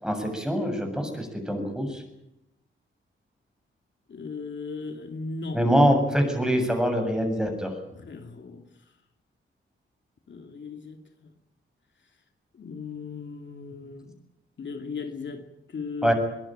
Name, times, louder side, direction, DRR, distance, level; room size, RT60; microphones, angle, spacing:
voice 1, 0.0-2.0 5.5-7.7 16.0-16.1, equal, 5° right, 7.4 m, -24 dB
voice 2, 4.1-5.6 7.9-8.6 10.3-11.3 12.6-14.1 14.6-16.1, left 4 dB, 60° left, 2.6 m, -37 dB
22.5 x 20.5 x 8.9 m
wide cardioid pair, 105°, 21 cm